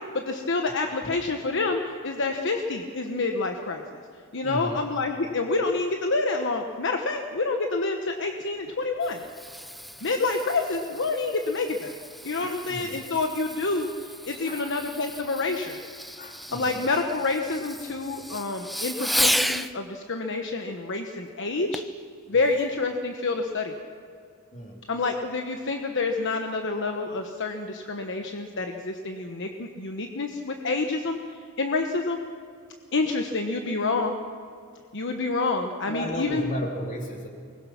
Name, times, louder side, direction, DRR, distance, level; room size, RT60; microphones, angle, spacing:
voice 1, 0.1-3.8 4.3-9.2 10.0-12.0 12.2-15.8 16.5-21.8 22.3-23.7 24.9-32.2 32.9-34.2 34.9-36.5, left 3 dB, 55° left, 4 dB, 1.2 m, -28 dB
voice 2, 4.4-4.8 12.4-13.0 14.5-14.7 16.2-16.9 22.3-22.5 24.5-24.9 35.9-37.3, equal, 35° left, 1 dB, 3.1 m, -35 dB
Fireworks, 8.7-19.7 21.7-22.0 22.6-22.7, equal, ahead, 0.5 m, -33 dB
23.5 x 21.0 x 6.0 m, 2.3 s
head